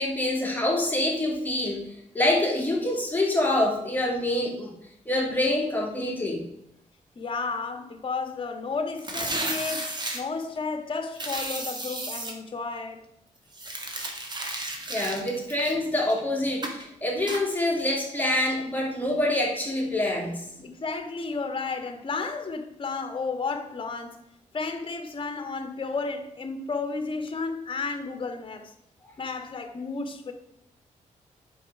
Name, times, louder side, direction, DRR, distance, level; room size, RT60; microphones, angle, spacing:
voice 1, 0.0-4.7 5.1-6.4 14.9-20.4, left 1 dB, 15° left, 2.8 m, -26 dB
voice 2, 7.1-13.0 20.6-24.2 24.5-28.7 29.2-30.3, left 4 dB, 40° left, 1.5 m, -32 dB
tearing and discarding paper, 9.0-10.2 11.2-12.3 13.5-16.2 16.6-16.8 17.3-17.4, right 2 dB, 35° right, 1.9 m, -33 dB
9.0 x 6.7 x 4.8 m
cardioid pair, 115°, 13 cm